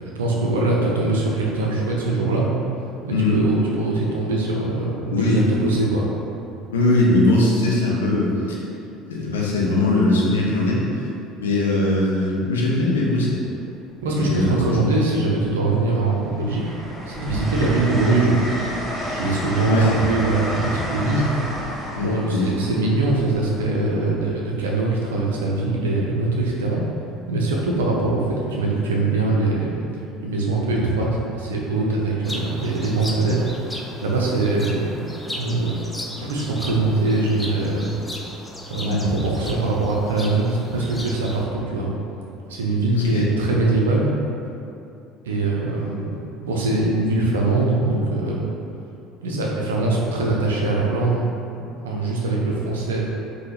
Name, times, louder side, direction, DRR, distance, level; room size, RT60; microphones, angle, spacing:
voice 1, 0.2-2.5 3.0-6.1 14.0-16.7 17.0-18.4 19.1-21.3 22.0-26.8 27.3-29.9 30.2-33.5 33.7-35.8 36.2-37.9 38.7-41.9 42.5-44.1 45.2-46.2 46.4-48.5 49.2-51.3 51.8-53.1, right 2 dB, 75° right, -3 dB, 0.4 m, -22 dB
voice 2, 5.1-5.4 6.7-8.6 9.1-10.8 11.4-13.4 14.2-14.7 19.7-20.0 21.9-22.6 38.8-39.0 42.9-43.3, left 2 dB, 75° left, -4 dB, 0.4 m, -20 dB
Train, 13.0-13.1 14.3-15.0 15.4-24.2 25.8-26.0, equal, 10° right, 0.9 m, -31 dB
sound 1, 32.2-41.4, left 1 dB, 10° left, 0.3 m, -36 dB
3.4 x 2.1 x 2.8 m, 2.7 s
figure-of-eight pair, 60°, 0 cm